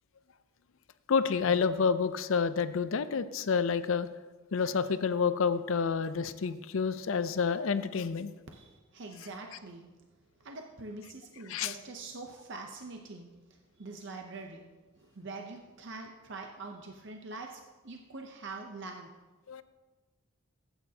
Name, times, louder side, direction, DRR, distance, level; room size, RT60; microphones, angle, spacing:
voice 1, 1.1-4.1 4.5-8.3 11.5-11.7 19.5-19.6, left 5 dB, 65° left, 13 dB, 0.5 m, -29 dB
voice 2, 8.5-9.9 10.4-13.3 13.8-14.6 15.0-19.1, right 3 dB, 55° right, 2 dB, 0.7 m, -44 dB
15.0 x 8.7 x 2.8 m, 1.3 s
head